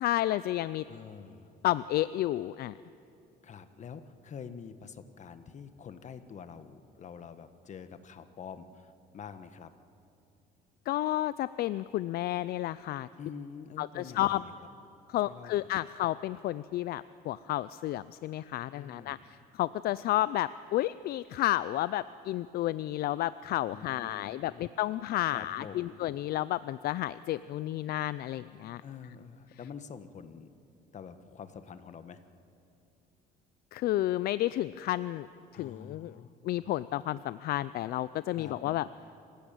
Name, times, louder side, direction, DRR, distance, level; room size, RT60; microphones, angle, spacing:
voice 1, 0.0-0.8 1.6-2.7 10.9-13.1 13.8-14.4 15.1-28.8 33.7-35.3 35.5-36.1 36.4-38.9, left 14 dB, 65° left, 16 dB, 0.5 m, -31 dB
voice 2, 0.9-1.5 3.4-9.7 13.2-14.5 15.3-15.8 18.7-19.3 23.7-24.7 25.3-26.0 28.8-30.5 30.9-32.2 35.5-36.3 38.3-38.9, left 6 dB, 45° left, 10 dB, 1.4 m, -46 dB
26.0 x 16.0 x 9.0 m, 2.7 s
cardioid pair, 110°, 17 cm